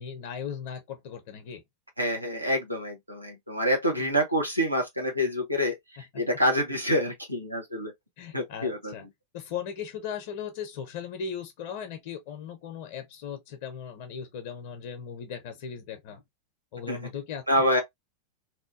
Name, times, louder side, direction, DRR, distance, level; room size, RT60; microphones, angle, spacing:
voice 1, 0.0-1.6 8.2-9.0 9.3-16.2 16.7-17.4, left 7 dB, 50° left, 0.5 m, -37 dB
voice 2, 2.0-7.9 8.3-8.9 16.9-17.0 17.5-17.8, equal, 85° right, 0.8 m, -27 dB
3.0 x 2.2 x 2.4 m
figure-of-eight pair, 90°, 0 cm